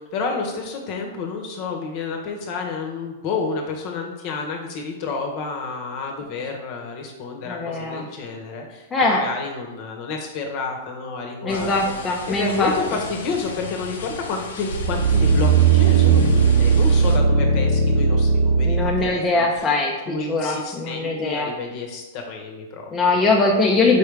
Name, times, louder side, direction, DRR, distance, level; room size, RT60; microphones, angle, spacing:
voice 1, 0.0-11.9 12.3-19.6 20.1-23.3, left 4 dB, 50° left, 2 dB, 0.9 m, -30 dB
voice 2, 7.5-8.1 8.9-9.2 11.4-12.7 18.6-21.5 22.9-24.0, left 3 dB, 20° left, -2 dB, 0.6 m, -21 dB
sound 1, 11.5-17.2, left 4 dB, 80° left, 0.6 m, -37 dB
sound 2, 14.7-19.1 19.6-19.7, right 5 dB, 70° right, 0.3 m, -17 dB
4.5 x 3.4 x 3.3 m, 1.1 s
hypercardioid pair, 125°, 0 cm